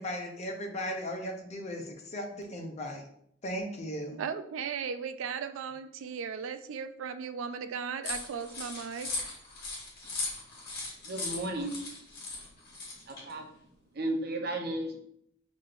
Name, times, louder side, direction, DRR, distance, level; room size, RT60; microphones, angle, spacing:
voice 1, 0.0-3.0 3.4-4.2, equal, 35° left, 3 dB, 0.6 m, -37 dB
voice 2, 4.2-9.1, right 6 dB, 85° right, 9 dB, 0.3 m, -36 dB
sound 1, 8.0-13.3, left 3 dB, 55° left, 1.5 m, -38 dB
voice 3, 11.0-11.8 13.1-13.5 13.9-15.0, right 1 dB, 55° right, 3 dB, 0.7 m, -34 dB
6.2 x 3.1 x 2.5 m, 0.71 s
head